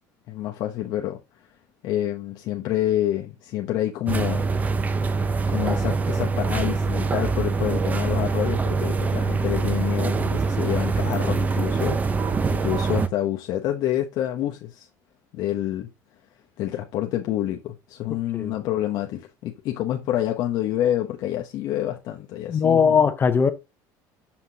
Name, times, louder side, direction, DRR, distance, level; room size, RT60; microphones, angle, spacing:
voice 1, 0.3-1.2 1.8-4.5 5.5-14.9 15.3-15.9 16.6-23.0, left 12 dB, 60° left, 0.9 m, -28 dB
sound 1, 4.1-13.1, right 4 dB, 20° right, 0.6 m, -24 dB
voice 2, 22.5-23.5, left 6 dB, 25° left, 0.7 m, -19 dB
6.9 x 5.8 x 2.8 m
cardioid pair, 140°, 8 cm